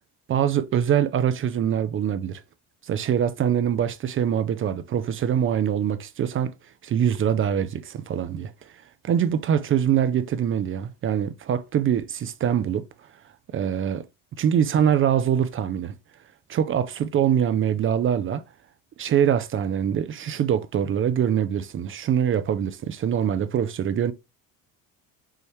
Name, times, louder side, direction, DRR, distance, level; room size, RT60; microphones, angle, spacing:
voice 1, 0.3-2.4 2.9-6.5 6.8-8.5 9.0-12.9 13.5-14.1 14.4-15.9 16.5-18.4 19.0-24.1, right 9 dB, 35° right, 0.4 m, -23 dB
5.5 x 3.2 x 3.0 m
cardioid pair, 125°, 36 cm